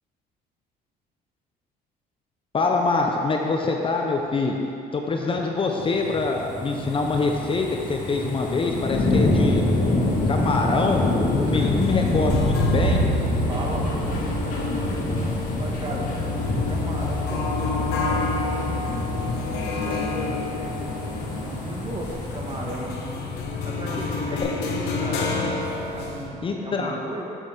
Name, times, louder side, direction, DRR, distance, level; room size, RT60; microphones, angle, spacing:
voice 1, 2.5-4.6 4.9-9.6 10.3-13.0 24.3-24.5 26.4-27.0, left 3 dB, 30° left, 2 dB, 0.7 m, -24 dB
sound 1, 5.8-24.0 24.4-24.5, left 2 dB, 50° left, 1.8 m, -27 dB
sound 2, 10.7-26.3, left 2 dB, 80° left, 1.0 m, -29 dB
sound 3, 11.5-17.4 19.0-19.5 22.1-22.2, right 5 dB, 85° right, 1.0 m, -34 dB
voice 2, 13.5-14.4 14.8-16.1 16.5-23.0 23.6-25.5 25.9-27.2, right 1 dB, 30° right, -2 dB, 1.5 m, -36 dB
7.7 x 6.4 x 5.0 m, 2.7 s
cardioid pair, 110°, 17 cm